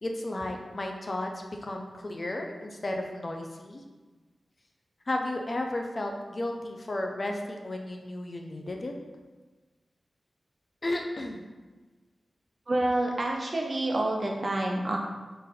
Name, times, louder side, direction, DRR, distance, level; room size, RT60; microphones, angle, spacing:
voice 1, 0.0-3.8 5.1-8.9 10.8-11.4, left 1 dB, 45° left, 2 dB, 0.5 m, -33 dB
voice 2, 12.7-15.0, right 1 dB, 50° right, 0 dB, 0.7 m, -28 dB
3.9 x 2.6 x 4.0 m, 1.3 s
cardioid pair, 60°, 0 cm